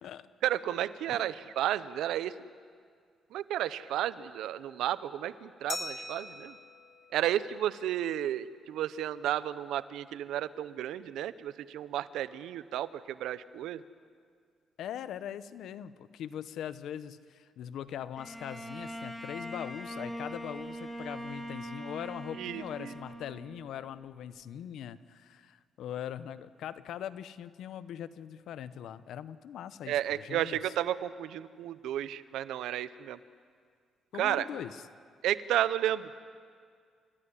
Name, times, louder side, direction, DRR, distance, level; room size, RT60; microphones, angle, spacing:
voice 1, 0.4-2.4 3.3-6.5 7.1-13.8 22.4-22.9 29.9-33.2 34.2-34.5 35.2-36.1, right 12 dB, 85° right, 15 dB, 0.8 m, -32 dB
Glass, 5.7-8.2, left 3 dB, 30° left, 2.0 m, -43 dB
voice 2, 14.8-30.7 34.1-34.8, left 10 dB, 75° left, 14 dB, 0.9 m, -41 dB
Bowed string instrument, 18.2-23.9, equal, 10° left, 3.1 m, -42 dB
29.0 x 14.5 x 10.0 m, 2.1 s
cardioid pair, 90°, 0 cm